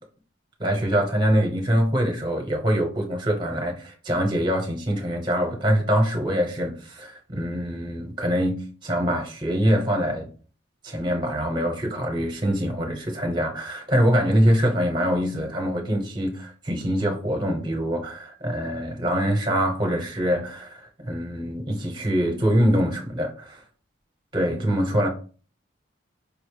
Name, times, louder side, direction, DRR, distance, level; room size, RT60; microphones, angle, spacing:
voice 1, 0.6-10.3 10.8-23.6 24.3-25.1, equal, 25° right, 0.8 m, -24 dB
5.0 x 2.0 x 3.2 m
head